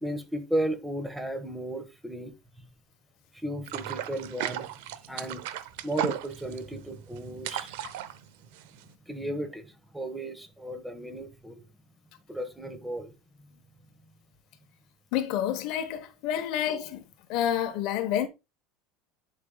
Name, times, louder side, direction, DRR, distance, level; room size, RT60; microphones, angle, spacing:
voice 1, 0.0-2.7 3.3-7.8 9.1-11.6 12.3-13.5 16.4-16.5, right 1 dB, 5° right, 1.3 m, -35 dB
sound 1, 3.7-8.9, right 12 dB, 80° right, 0.7 m, -35 dB
voice 2, 15.1-17.0 17.3-18.3, left 10 dB, 60° left, 1.0 m, -28 dB
10.5 x 5.3 x 2.3 m
supercardioid pair, 140°, 0 cm